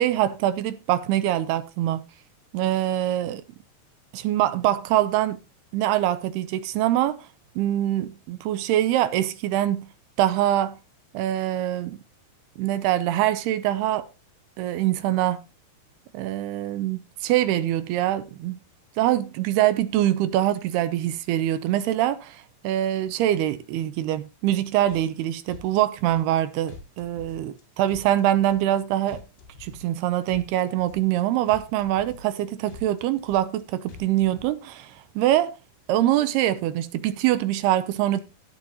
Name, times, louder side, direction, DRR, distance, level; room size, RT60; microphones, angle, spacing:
voice 1, 0.0-2.1 2.5-3.4 4.1-5.4 5.7-7.3 7.6-9.9 10.2-10.8 11.1-12.0 12.6-14.1 14.6-15.4 16.1-18.6 19.0-29.2 29.6-35.6 35.9-38.2, right 13 dB, 80° right, 2.6 m, -24 dB
sound 1, 24.9-25.2 25.5-26.4 26.7-27.6 27.9-28.8 29.1-30.0 30.3-31.2 31.5-32.4 32.7-33.6 33.9-34.5, left 5 dB, 80° left, 4.4 m, -46 dB
16.5 x 7.1 x 2.8 m
omnidirectional pair, 4.9 m